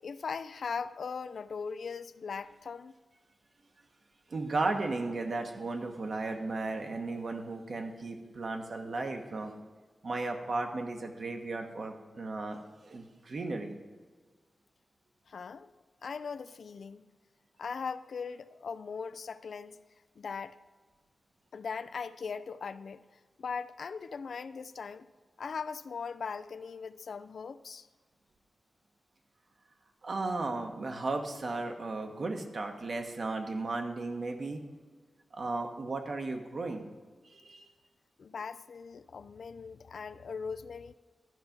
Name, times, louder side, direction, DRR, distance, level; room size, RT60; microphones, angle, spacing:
voice 1, 0.0-2.9 15.3-15.7 16.0-17.1 17.6-19.8 20.2-20.6 21.5-25.1 25.4-27.9 38.2-40.9, left 5 dB, 75° left, 14 dB, 0.4 m, -39 dB
voice 2, 4.3-9.5 10.0-13.8 30.0-34.6 35.3-36.9 37.2-37.6, right 3 dB, 60° right, 4 dB, 1.2 m, -35 dB
12.5 x 5.9 x 5.2 m, 1.4 s
wide cardioid pair, 80°, 0 cm